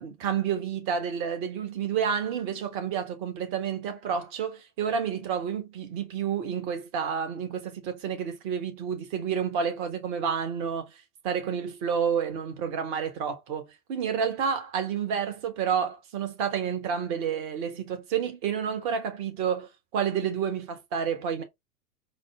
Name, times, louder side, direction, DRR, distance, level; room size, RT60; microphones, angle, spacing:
voice 1, 0.0-21.4, right 7 dB, 45° right, 1.5 m, -30 dB
4.1 x 2.0 x 3.6 m
figure-of-eight pair, 90°, 47 cm